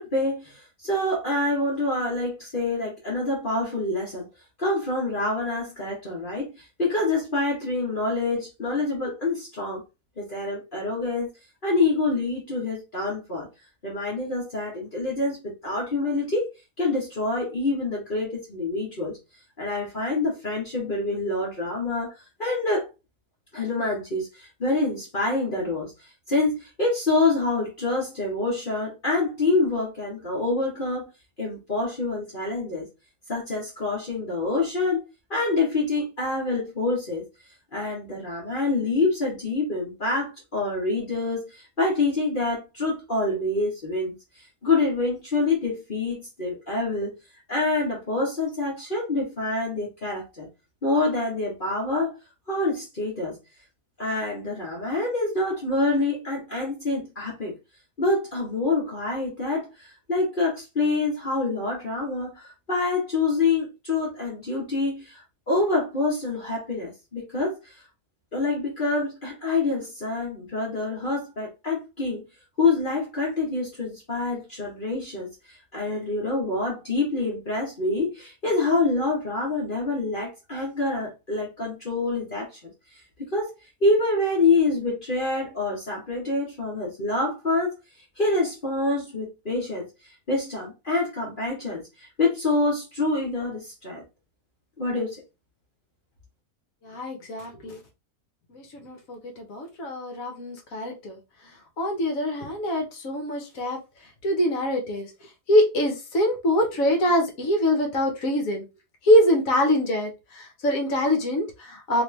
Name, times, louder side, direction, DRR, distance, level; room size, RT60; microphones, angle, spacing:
voice 1, 0.0-4.3 4.6-9.8 10.2-11.3 11.6-13.5 13.8-16.5 16.8-19.2 19.6-22.1 22.4-22.9 23.5-31.1 31.4-32.9 33.3-35.0 35.3-37.2 37.7-44.1 44.6-47.1 47.5-50.5 50.8-52.1 52.5-53.4 54.0-57.6 58.0-67.8 68.3-72.2 72.6-75.3 75.7-83.5 83.8-87.7 88.2-94.0 94.8-95.2, left 3 dB, 35° left, 1.1 m, -26 dB
voice 2, 96.8-97.8 98.5-101.2 101.8-103.8 104.2-105.1 105.5-108.6 109.0-112.0, left 1 dB, 60° left, 1.2 m, -24 dB
3.1 x 3.0 x 3.1 m
omnidirectional pair, 1.7 m